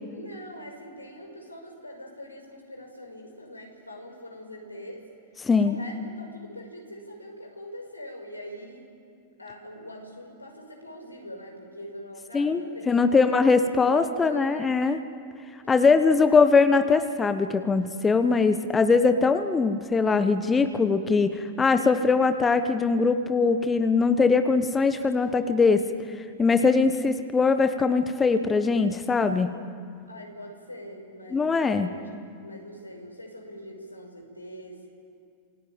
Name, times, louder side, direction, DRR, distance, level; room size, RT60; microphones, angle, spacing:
voice 1, 0.1-5.1 5.5-8.9 9.4-14.6 15.6-16.3 30.1-32.1 32.4-34.9, equal, 85° left, 2 dB, 5.7 m, -43 dB
voice 2, 5.4-5.8 12.3-15.0 15.7-25.9 26.1-29.5 31.3-31.9, left 4 dB, 15° left, 10 dB, 1.1 m, -21 dB
27.0 x 17.5 x 9.0 m, 2.4 s
figure-of-eight pair, 90°, 0 cm